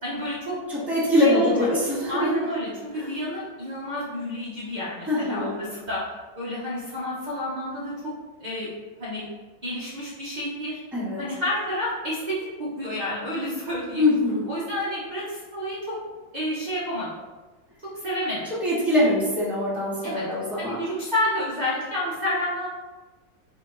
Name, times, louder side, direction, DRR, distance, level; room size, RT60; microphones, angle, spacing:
voice 1, 0.0-0.6 1.2-1.7 2.1-6.0 6.4-8.1 8.4-8.7 9.0-9.2 9.6-10.8 11.2-14.0 14.5-16.0 16.3-17.1 17.9-18.5 20.0-20.2 20.6-22.7, left 1 dB, 50° right, -9 dB, 0.5 m, -29 dB
voice 2, 0.7-2.4 2.9-3.1 5.0-5.5 10.9-11.2 14.0-14.5 18.6-20.8, left 1 dB, ahead, -9 dB, 0.6 m, -23 dB
5.0 x 2.8 x 2.4 m, 1.2 s
omnidirectional pair, 2.2 m